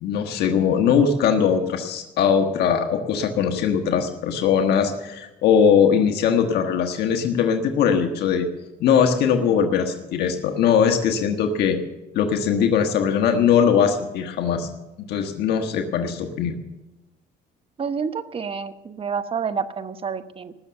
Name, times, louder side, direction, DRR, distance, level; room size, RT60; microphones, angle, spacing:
voice 1, 0.0-8.5 8.8-11.8 12.1-14.7 15.1-16.6, left 7 dB, 75° left, 5 dB, 1.4 m, -20 dB
voice 2, 17.8-20.6, right 6 dB, 35° right, 11 dB, 1.0 m, -29 dB
19.0 x 7.0 x 7.7 m, 1.0 s
cardioid pair, 110°, 17 cm